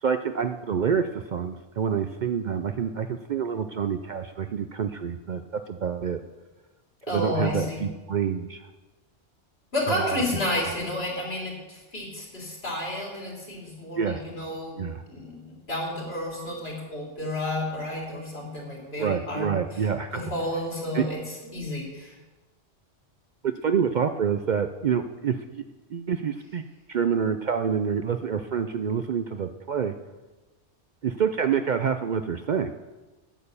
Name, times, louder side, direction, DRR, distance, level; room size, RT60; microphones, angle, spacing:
voice 1, 0.0-6.2 7.1-8.7 9.9-10.2 13.9-14.2 14.8-15.0 19.0-20.3 20.9-21.1 23.4-25.6 25.9-26.6 26.9-29.9 31.0-32.7, right 7 dB, 55° right, 8 dB, 0.5 m, -27 dB
voice 2, 7.1-7.8 9.7-19.5 20.1-22.1, left 1 dB, 65° left, -2 dB, 3.3 m, -31 dB
8.8 x 8.7 x 6.9 m, 1.2 s
omnidirectional pair, 1.1 m